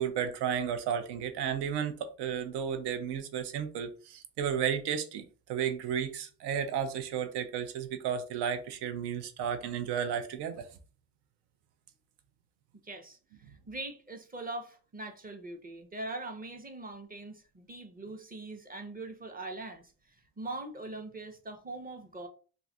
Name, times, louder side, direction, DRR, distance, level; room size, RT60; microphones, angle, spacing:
voice 1, 0.0-5.2 5.5-10.7, right 8 dB, 85° right, 0.6 m, -33 dB
voice 2, 12.8-13.2 13.7-22.3, right 2 dB, 20° right, 0.7 m, -42 dB
2.5 x 2.3 x 4.0 m
cardioid pair, 80°, 40 cm